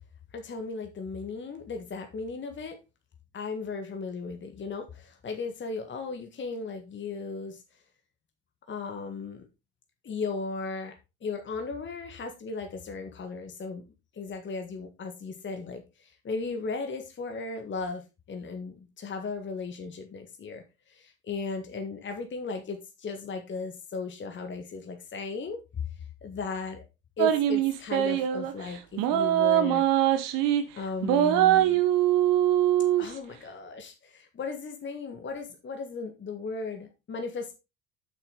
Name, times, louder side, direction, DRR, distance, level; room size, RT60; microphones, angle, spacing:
voice 1, 0.3-2.8 3.3-7.6 8.7-9.5 10.0-13.8 14.1-25.8 26.2-26.8 27.2-29.8 30.7-31.8 33.0-37.5, left 4 dB, 30° left, 5 dB, 1.7 m, -36 dB
sound 1, 27.2-28.5 29.0-30.6 31.0-33.1, right 12 dB, 55° right, 1.4 m, -23 dB
9.3 x 6.9 x 3.9 m, 0.27 s
figure-of-eight pair, 60°, 40 cm